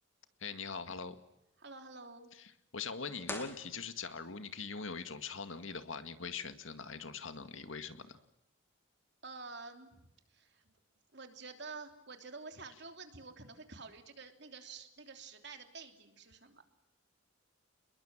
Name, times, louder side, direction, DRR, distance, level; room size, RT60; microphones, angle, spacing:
voice 1, 0.4-1.2 2.7-8.2, left 5 dB, 75° left, 9 dB, 2.0 m, -42 dB
voice 2, 1.6-2.3 9.2-10.7 11.1-16.6, right 4 dB, 55° right, 6 dB, 3.2 m, -49 dB
sound 1, 3.2-4.4, left 2 dB, 10° left, 2.4 m, -45 dB
28.5 x 22.0 x 7.4 m, 0.86 s
head